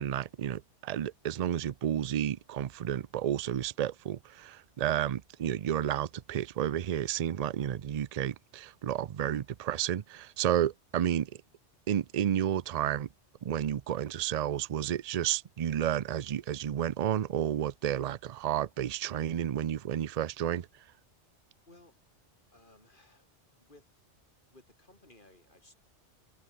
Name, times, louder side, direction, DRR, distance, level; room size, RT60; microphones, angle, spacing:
voice 1, 0.0-11.3 11.9-13.1 13.4-20.7, right 10 dB, 50° right, 0.5 m, -31 dB
voice 2, 22.5-23.3 23.6-23.9 24.5-25.7, left 2 dB, 45° left, 4.7 m, -59 dB
omnidirectional pair, 1.2 m